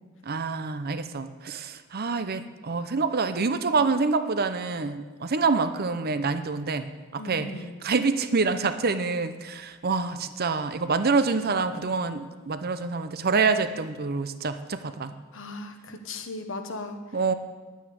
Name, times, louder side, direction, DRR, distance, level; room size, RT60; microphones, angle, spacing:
voice 1, 0.3-7.5 7.8-15.1 17.1-17.3, right 4 dB, 45° right, 11 dB, 0.7 m, -26 dB
voice 2, 7.2-7.7 15.3-17.0, left 2 dB, 65° left, 7 dB, 1.3 m, -37 dB
10.5 x 9.2 x 8.6 m, 1.3 s
head